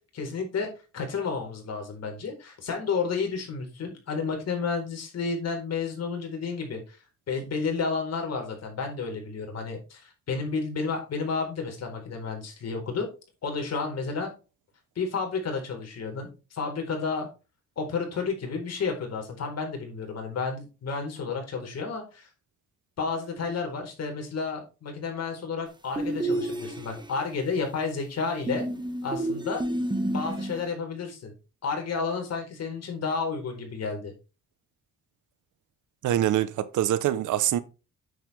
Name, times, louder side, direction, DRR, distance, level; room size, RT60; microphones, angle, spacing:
voice 1, 0.1-0.7 0.9-7.0 7.3-13.1 13.4-14.3 15.0-17.3 17.8-22.3 23.0-28.7 29.0-29.6 30.1-31.3 31.6-34.1, left 4 dB, 55° left, 4.3 m, -31 dB
sound 1, 26.0-27.2 28.5-30.7, right 1 dB, 15° right, 1.7 m, -30 dB
voice 2, 36.0-37.6, right 12 dB, 80° right, 1.0 m, -24 dB
9.4 x 7.3 x 3.5 m
cardioid pair, 90°, 30 cm